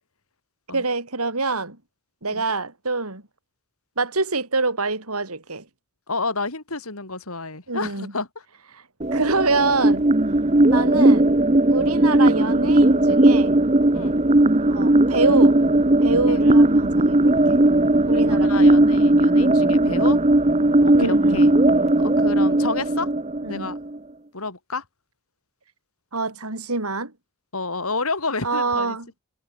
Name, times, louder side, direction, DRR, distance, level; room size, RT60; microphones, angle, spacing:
voice 1, 0.7-1.8 2.2-3.2 4.0-5.6 7.7-8.1 9.1-10.1 10.7-11.3 11.7-13.6 14.7-15.6 16.0-17.6 18.1-18.8 20.9-21.4 23.4-23.7 26.1-27.1 28.4-29.1, right 3 dB, 85° right, 4.5 m, -25 dB
voice 2, 6.1-8.3 10.7-11.0 13.9-14.2 16.3-16.5 18.1-20.2 20.8-21.5 22.0-23.1 23.5-23.8 24.3-24.8 27.5-29.0, left 3 dB, 75° left, 4.1 m, -30 dB
sound 1, 9.0-24.0, right 1 dB, 30° right, 1.1 m, -17 dB
head